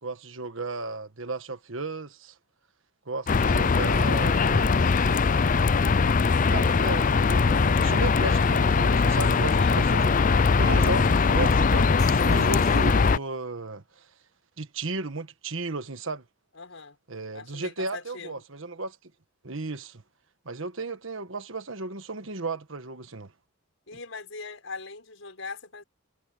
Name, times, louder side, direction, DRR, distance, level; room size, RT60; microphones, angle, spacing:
voice 1, 0.0-2.3 3.0-5.1 6.5-14.1 14.6-16.2 17.1-19.0 19.4-20.0 20.4-23.3, right 3 dB, 70° right, 1.5 m, -34 dB
sound 1, 3.3-13.2, left 4 dB, 40° left, 0.5 m, -21 dB
voice 2, 9.4-9.8 16.5-17.0 17.3-18.3 23.9-25.8, left 4 dB, 70° left, 6.8 m, -40 dB
sound 2, 12.0-13.4, left 5 dB, 20° left, 4.0 m, -48 dB
head